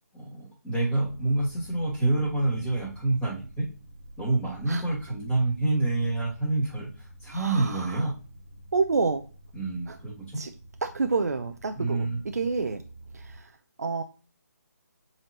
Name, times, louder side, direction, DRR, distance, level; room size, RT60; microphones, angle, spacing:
voice 1, 0.1-3.7 4.2-8.1 9.5-10.4 11.7-12.2, right 2 dB, 10° left, -6 dB, 2.5 m, -27 dB
sound 1, 1.0-13.4, right 1 dB, 45° right, 1.3 m, -48 dB
voice 2, 7.3-8.1 8.7-9.2 9.9-10.0 10.4-10.5 10.8-12.8 13.1-14.0, right 4 dB, 65° right, 7 dB, 0.7 m, -29 dB
7.6 x 4.3 x 3.0 m, 0.35 s
figure-of-eight pair, 145°, 9 cm